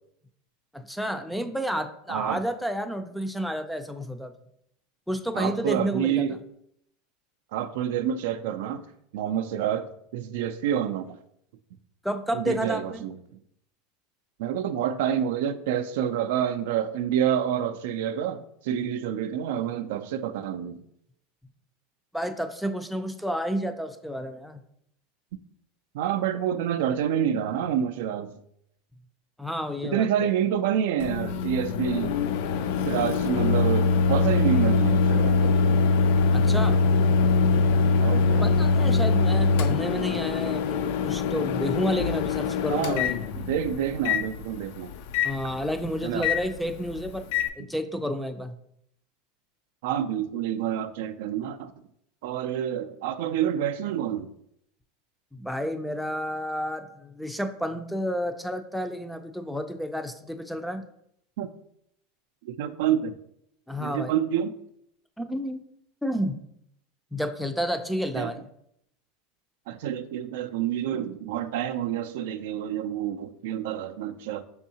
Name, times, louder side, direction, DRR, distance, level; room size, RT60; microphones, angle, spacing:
voice 1, 0.7-4.3 5.1-6.3 12.0-13.0 22.1-24.6 29.4-30.3 36.3-36.8 38.4-43.2 45.2-47.2 47.6-48.6 55.3-60.9 63.7-64.1 65.2-65.6 66.0-66.4 67.1-68.4, equal, ahead, 0.4 m, -30 dB
voice 2, 2.1-2.4 5.3-6.4 7.5-8.8 9.1-11.2 12.3-13.1 14.4-20.8 25.9-28.4 29.8-32.2 32.9-35.6 38.0-38.5 42.7-43.1 43.5-44.9 46.0-46.3 49.8-51.7 52.2-54.3 61.4-61.5 62.4-63.2 63.8-64.5 68.1-68.3 69.7-74.4, right 9 dB, 75° right, 0.3 m, -28 dB
Microwave oven, 31.0-47.5, left 4 dB, 70° left, 0.4 m, -23 dB
5.4 x 3.5 x 2.8 m
supercardioid pair, 125°, 0 cm